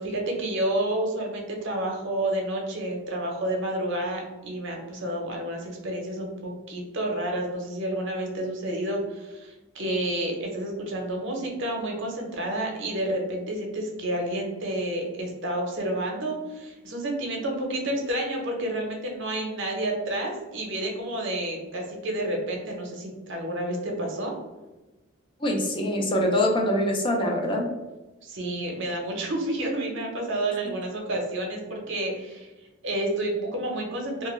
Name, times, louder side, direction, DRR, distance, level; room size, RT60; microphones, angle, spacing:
voice 1, 0.0-24.3 28.2-32.5 32.8-34.3, right 1 dB, 65° right, 1 dB, 0.6 m, -30 dB
voice 2, 25.4-27.7, left 1 dB, 25° left, 1 dB, 0.3 m, -24 dB
2.2 x 2.1 x 3.0 m, 1.1 s
head